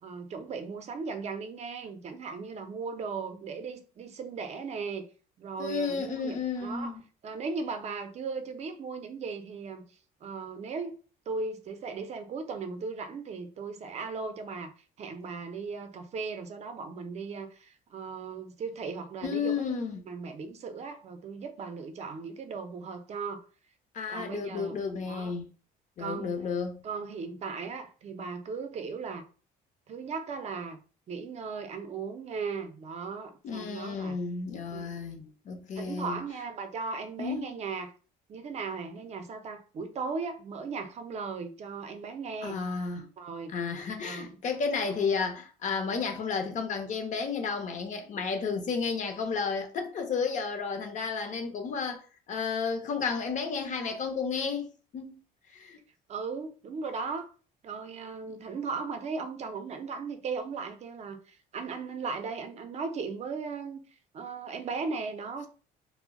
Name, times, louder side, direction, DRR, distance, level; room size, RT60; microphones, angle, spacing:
voice 1, 0.0-5.1 5.4-6.9 7.2-9.9 10.2-11.0 11.3-14.7 15.0-19.6 20.1-23.5 24.1-24.8 25.1-25.3 26.0-26.4 26.8-29.3 29.9-30.8 31.1-34.2 34.7-35.2 35.8-37.9 38.3-42.6 43.2-43.5 44.0-44.3 56.1-57.3 57.6-63.8 64.1-65.5, right 4 dB, 40° right, 0.5 m, -37 dB
voice 2, 5.6-7.0 19.2-20.1 23.9-25.4 26.0-26.8 33.4-36.2 37.2-37.5 42.4-43.1 43.5-55.2 55.5-55.8, left 5 dB, 45° left, 0.6 m, -32 dB
2.2 x 2.0 x 3.6 m
cardioid pair, 110°, 17 cm